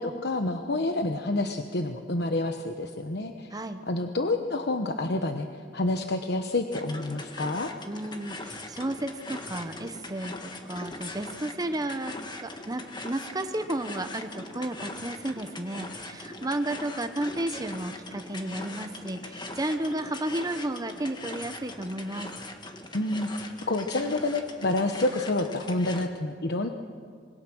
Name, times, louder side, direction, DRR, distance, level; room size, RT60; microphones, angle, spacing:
voice 1, 0.0-3.6 3.9-5.5 5.7-7.7 22.9-26.7, left 2 dB, 65° left, 5 dB, 1.1 m, -28 dB
voice 2, 3.5-3.8 7.9-22.3, right 1 dB, 20° right, 8 dB, 0.9 m, -33 dB
sound 1, 6.7-26.1, left 2 dB, 25° left, 1.8 m, -41 dB
26.0 x 22.5 x 6.3 m, 2.3 s
head